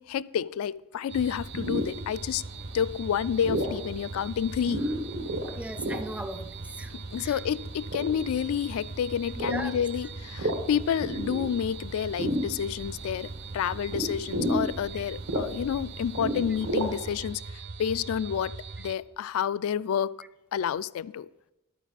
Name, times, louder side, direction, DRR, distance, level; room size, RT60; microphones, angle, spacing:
voice 1, 0.0-2.4 2.7-4.8 7.1-17.4 17.8-18.5 18.8-20.1 20.5-21.3, left 8 dB, 80° left, 0.3 m, -29 dB
sound 1, 1.1-19.0, right 4 dB, 50° right, 0.6 m, -41 dB
sound 2, 1.1-17.3, equal, 80° right, 1.3 m, -34 dB
voice 2, 5.5-6.9 7.2-7.4 9.3-9.8 15.0-15.1, right 1 dB, 5° right, 0.4 m, -38 dB
11.5 x 9.3 x 4.1 m
head